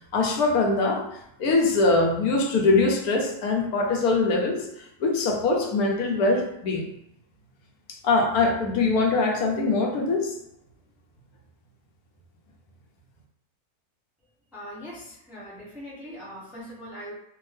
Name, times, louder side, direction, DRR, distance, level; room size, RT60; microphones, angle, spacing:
voice 1, 0.1-1.0 1.4-4.7 5.0-6.8 8.0-10.3, left 3 dB, 75° left, 1 dB, 1.2 m, -22 dB
voice 2, 14.5-17.1, equal, ahead, -6 dB, 0.6 m, -41 dB
3.5 x 2.4 x 3.2 m, 0.76 s
omnidirectional pair, 1.6 m